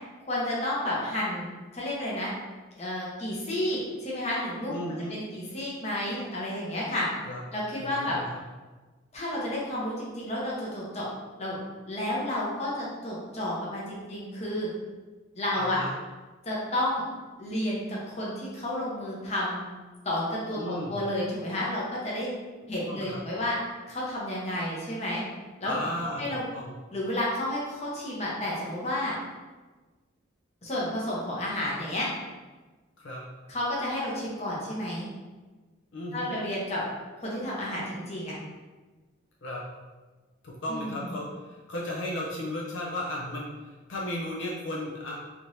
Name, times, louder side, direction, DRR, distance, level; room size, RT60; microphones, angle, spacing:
voice 1, 0.3-1.4 1.7-2.3 2.8-4.8 5.1-7.1 7.5-8.2 9.1-11.1 11.4-11.6 11.9-14.7 15.4-15.8 16.4-17.0 17.4-19.6 20.0-22.3 22.7-23.6 23.9-25.2 25.6-25.9 26.2-26.4 26.9-29.1 30.6-32.1 33.5-35.1 36.1-36.8 37.2-38.4 40.7-41.1, left 1 dB, 30° left, -6 dB, 0.8 m, -31 dB
voice 2, 4.7-5.2 7.3-7.4 7.8-8.4 15.5-15.9 20.6-21.0 22.9-23.2 25.6-26.7 33.0-33.2 35.9-36.3 39.4-39.6 40.4-45.2, left 1 dB, 70° left, -4 dB, 0.5 m, -35 dB
3.5 x 3.0 x 2.6 m, 1.3 s
head